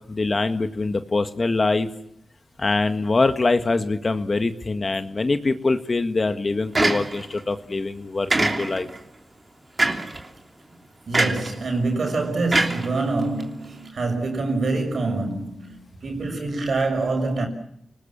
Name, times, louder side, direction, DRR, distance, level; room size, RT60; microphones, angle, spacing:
voice 1, 0.1-1.9 2.6-8.9, left 3 dB, 40° left, 1.7 m, -23 dB
sound 1, 6.7-7.4 8.3-9.0 9.8-10.2 11.1-11.5 12.5-13.4, right 2 dB, 35° right, 3.1 m, -23 dB
voice 2, 11.1-17.5, right 3 dB, 65° right, 6.7 m, -25 dB
29.0 x 20.0 x 7.4 m
cardioid pair, 65°, 0 cm